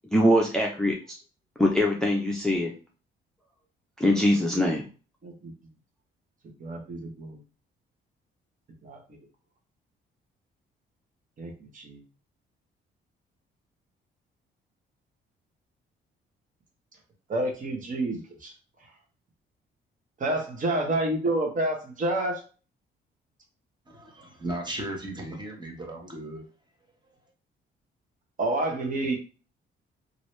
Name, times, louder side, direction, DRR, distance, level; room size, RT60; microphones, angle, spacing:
voice 1, 0.1-1.2 1.6-2.7 4.0-4.8, left 1 dB, 5° left, -1 dB, 0.6 m, -23 dB
voice 2, 6.6-7.4 8.8-9.0 11.4-12.0 17.3-18.5 20.2-22.4 28.4-29.2, right 2 dB, 40° right, 1 dB, 1.0 m, -29 dB
voice 3, 23.9-26.4, right 1 dB, 20° right, 0 dB, 1.2 m, -36 dB
2.9 x 2.6 x 3.2 m, 0.35 s
cardioid pair, 90°, 20 cm